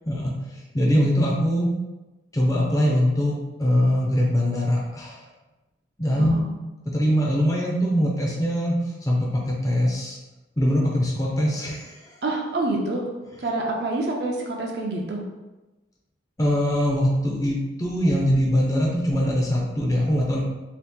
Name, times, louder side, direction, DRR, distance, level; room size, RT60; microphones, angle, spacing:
voice 1, 0.7-1.7 2.3-5.2 6.0-6.5 6.9-8.8 9.1-10.2 10.6-12.0 16.4-20.4, equal, 20° left, -3 dB, 0.5 m, -22 dB
voice 2, 6.2-6.5 12.2-13.1 13.4-15.2, right 2 dB, 60° right, 0 dB, 0.5 m, -27 dB
2.8 x 2.5 x 3.5 m, 1.1 s
head